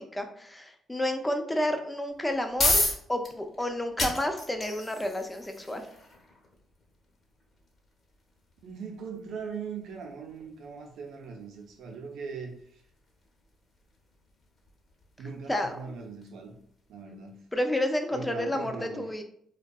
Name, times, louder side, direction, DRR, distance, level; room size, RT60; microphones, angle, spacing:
voice 1, 0.0-2.8 3.1-5.8 15.5-15.7 17.5-19.2, left 1 dB, 10° left, 6 dB, 0.4 m, -30 dB
sound 1, 2.1-17.0, left 2 dB, 45° left, 0.9 m, -36 dB
voice 2, 8.6-12.8 15.2-16.5 16.9-17.4 18.1-19.1, right 5 dB, 80° right, 2 dB, 0.5 m, -40 dB
2.6 x 2.2 x 2.3 m, 0.65 s
cardioid pair, 90°, 0 cm